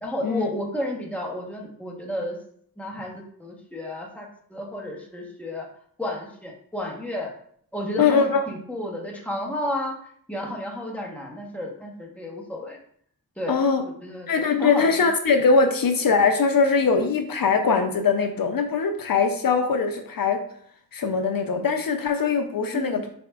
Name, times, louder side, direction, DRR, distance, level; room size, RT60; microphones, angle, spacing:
voice 1, 0.0-2.4 2.8-5.7 6.0-7.3 7.7-10.0 10.3-12.8 13.4-13.6 14.0-15.0 22.7-23.0, left 1 dB, 5° left, -1 dB, 0.9 m, -32 dB
voice 2, 8.0-8.5 13.5-13.8 14.3-20.4 20.9-23.0, left 5 dB, 65° left, 6 dB, 0.5 m, -21 dB
4.6 x 4.2 x 2.3 m, 0.64 s
wide cardioid pair, 60°, 36 cm